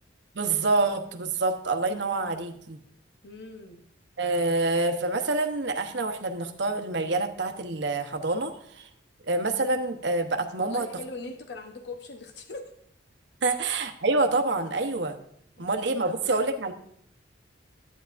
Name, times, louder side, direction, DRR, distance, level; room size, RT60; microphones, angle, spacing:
voice 1, 0.3-2.8 4.2-8.9 9.3-10.9 13.4-15.2 15.6-16.7, right 3 dB, 65° right, 6 dB, 0.9 m, -27 dB
voice 2, 3.2-3.8 10.6-12.7 13.4-13.6 15.6-15.8 16.0-16.5, left 3 dB, 60° left, 4 dB, 0.8 m, -41 dB
11.5 x 9.2 x 2.5 m, 0.68 s
head